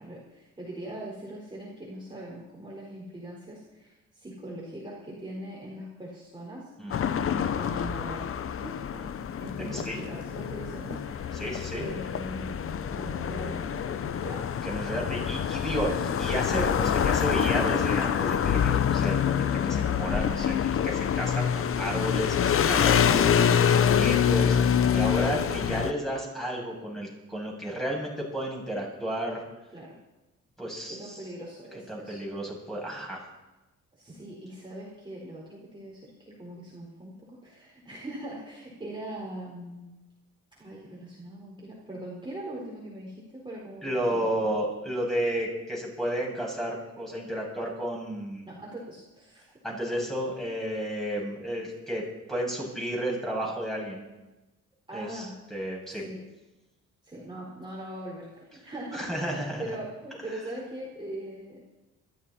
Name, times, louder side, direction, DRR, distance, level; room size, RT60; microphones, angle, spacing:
voice 1, 0.0-6.7 7.3-8.3 8.6-9.1 9.4-11.4 11.7-14.5 23.0-23.5 29.7-30.0 30.9-32.2 34.0-39.9 40.6-44.5 48.4-49.6 54.9-55.4 55.9-56.2 57.0-59.1 59.6-61.7, right 1 dB, 15° right, -4 dB, 4.6 m, -41 dB
voice 2, 6.8-7.4 9.6-10.0 11.4-11.9 14.6-23.3 23.7-29.4 30.6-31.2 31.9-33.2 43.8-48.5 49.6-52.0 52.3-54.0 54.9-55.3 55.5-56.0 58.9-59.6, equal, ahead, -3 dB, 7.3 m, -32 dB
sound 1, 6.9-25.9, left 8 dB, 45° left, 0.8 m, -26 dB
22.0 x 13.0 x 4.3 m, 1.0 s
cardioid pair, 90°, 30 cm